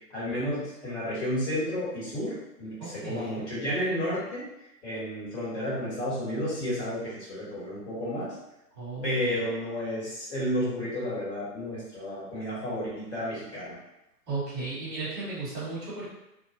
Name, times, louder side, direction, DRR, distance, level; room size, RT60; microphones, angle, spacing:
voice 1, 0.1-4.5 4.8-8.3 9.0-13.8, equal, 40° left, -8 dB, 1.4 m, -32 dB
voice 2, 2.8-3.5 8.7-9.4 14.3-16.1, right 3 dB, 10° right, -13 dB, 1.0 m, -35 dB
2.6 x 2.3 x 2.5 m, 0.89 s
figure-of-eight pair, 140°, 49 cm